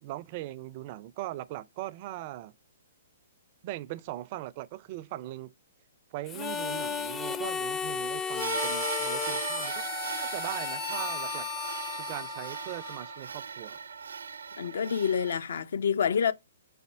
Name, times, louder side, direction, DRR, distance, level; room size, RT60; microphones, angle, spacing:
voice 1, 0.0-2.6 3.6-5.5 6.1-11.5 11.9-13.8, right 15 dB, 40° right, 0.4 m, -40 dB
Harmonica, 6.3-13.2, left 7 dB, 20° left, 0.4 m, -34 dB
sound 1, 8.4-15.4, right 6 dB, 85° right, 0.6 m, -37 dB
voice 2, 14.6-16.3, left 7 dB, 70° left, 0.6 m, -27 dB
5.5 x 4.2 x 4.2 m
hypercardioid pair, 140°, 0 cm